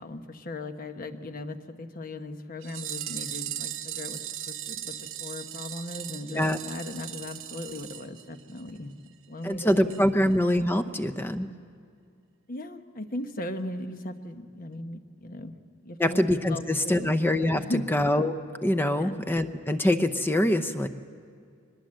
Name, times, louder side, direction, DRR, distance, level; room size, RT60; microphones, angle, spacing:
voice 1, 0.0-8.9 9.3-10.2 12.5-15.5 15.8-16.2 16.5-17.1 17.5-17.9 18.9-19.2, left 1 dB, 40° left, 8 dB, 1.1 m, -38 dB
sound 1, 2.6-8.8 9.1-9.2 9.4-9.5 9.9-10.0 10.3-10.4, right 11 dB, 65° right, 1.0 m, -38 dB
voice 2, 9.4-11.5 16.0-17.6 17.9-18.4 18.6-20.9, left 1 dB, 10° left, 10 dB, 0.7 m, -24 dB
23.0 x 20.5 x 7.6 m, 2.3 s
head